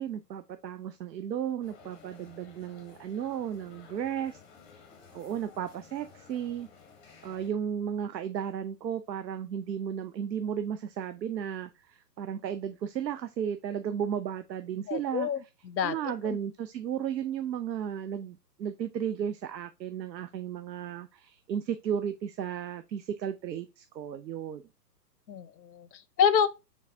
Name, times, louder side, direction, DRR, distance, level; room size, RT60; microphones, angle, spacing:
voice 1, 0.0-4.4 4.7-4.8 5.1-6.7 7.2-15.3 15.8-24.6, right 9 dB, 85° right, 0.6 m, -34 dB
sound 1, 1.6-7.5, left 5 dB, 15° left, 0.6 m, -54 dB
voice 2, 14.9-16.0 16.2-16.4 25.3-26.5, left 7 dB, 90° left, 0.7 m, -28 dB
4.6 x 3.5 x 2.6 m
hypercardioid pair, 125°, 50 cm